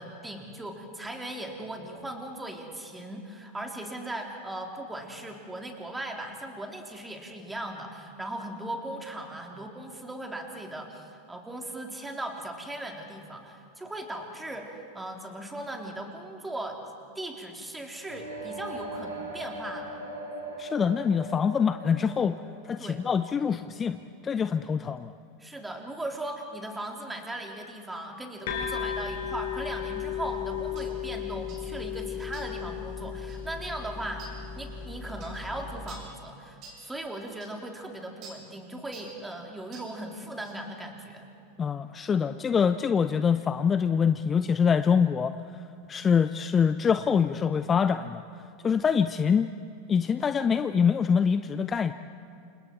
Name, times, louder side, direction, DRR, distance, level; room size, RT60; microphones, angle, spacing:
voice 1, 0.0-16.8 17.2-20.0 22.8-23.0 25.4-41.3, right 1 dB, 10° right, 2 dB, 3.5 m, -38 dB
sound 1, 18.0-23.9, right 2 dB, 80° right, 4.8 m, -40 dB
voice 2, 20.6-22.4 22.6-25.1 41.6-48.2 48.6-49.5 49.9-51.9, left 6 dB, 25° left, 11 dB, 0.7 m, -25 dB
sound 2, 28.5-36.0, left 8 dB, 60° left, 5.9 m, -35 dB
sound 3, 30.8-30.9 31.5-31.7 32.3-32.6 33.3-33.5 34.2-34.4 35.2-35.4 35.9-36.1 36.6-36.8 37.4-37.5 38.2-38.4 38.9-39.2 39.7-39.9 40.4-40.6, right 3 dB, 45° right, 7.4 m, -48 dB
29.0 x 27.5 x 4.6 m, 2.6 s
figure-of-eight pair, 85°, 0 cm